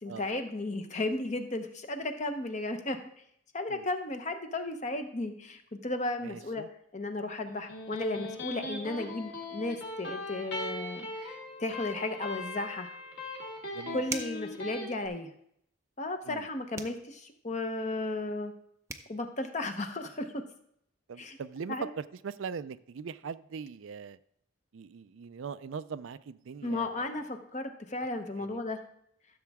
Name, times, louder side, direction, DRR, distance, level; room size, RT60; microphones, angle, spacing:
voice 1, 0.0-3.0 3.5-6.7 6.9-12.9 13.9-15.3 16.0-18.5 19.1-20.4 21.2-21.4 21.7-21.9 26.6-28.8, left 2 dB, 35° left, 0.8 m, -34 dB
voice 2, 6.2-6.7 13.7-14.0 16.3-16.5 21.1-24.2 24.7-27.1 28.4-28.6, right 6 dB, 70° right, 0.4 m, -41 dB
Electric guitar, 7.5-14.9, left 2 dB, 55° left, 2.3 m, -39 dB
sound 1, 14.1-14.5 16.7-17.0 18.6-18.7 18.9-19.1, right 4 dB, 15° right, 0.5 m, -39 dB
14.5 x 7.1 x 3.5 m
head